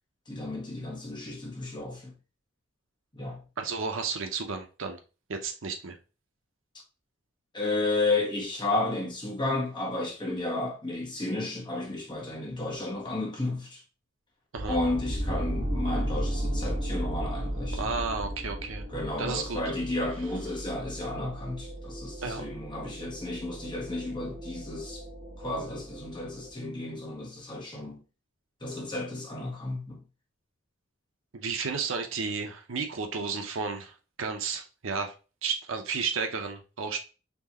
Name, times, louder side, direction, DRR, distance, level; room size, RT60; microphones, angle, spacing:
voice 1, 0.3-2.1 3.1-3.4 7.5-13.8 14.7-17.9 18.9-25.0 25.4-28.0 28.6-30.0, left 2 dB, 25° left, 1.3 m, -32 dB
voice 2, 3.6-5.0 5.3-6.0 14.5-14.8 17.8-18.8 19.2-19.6 22.2-22.4 31.3-35.1 35.4-37.0, right 5 dB, 70° right, 0.8 m, -32 dB
sound 1, 14.6-26.5, equal, 40° right, 0.9 m, -35 dB
4.4 x 3.2 x 2.9 m
head